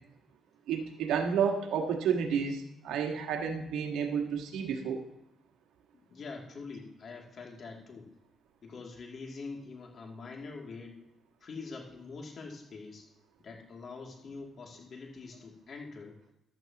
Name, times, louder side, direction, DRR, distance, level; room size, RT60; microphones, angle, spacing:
voice 1, 0.7-5.0, right 7 dB, 85° right, 3 dB, 1.6 m, -31 dB
voice 2, 5.9-8.1 8.6-11.0 11.4-13.1 13.4-16.2, left 4 dB, 50° left, 1 dB, 2.6 m, -44 dB
14.5 x 12.0 x 3.0 m, 0.79 s
cardioid pair, 90°, 0 cm